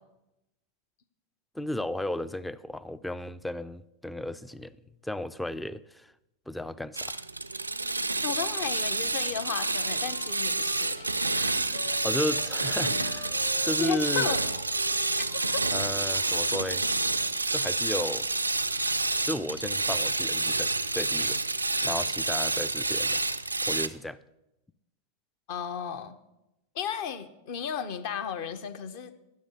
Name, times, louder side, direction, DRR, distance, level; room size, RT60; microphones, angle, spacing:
voice 1, 1.5-4.8 5.0-6.1 6.5-7.2 12.0-13.3 13.6-14.3 15.7-16.9 17.5-18.3 19.2-21.4 21.8-23.2 23.7-24.2, left 1 dB, 5° left, 0.4 m, -34 dB
sound 1, 6.9-23.9, right 2 dB, 85° right, 0.4 m, -28 dB
voice 2, 8.2-11.8 13.8-14.6 15.3-15.7 25.5-26.2 26.7-29.1, left 8 dB, 50° left, 0.9 m, -35 dB
Wind instrument woodwind instrument, 8.8-12.5 12.8-16.7, left 2 dB, 85° left, 1.0 m, -45 dB
10.0 x 6.8 x 7.3 m
figure-of-eight pair, 90°, 0 cm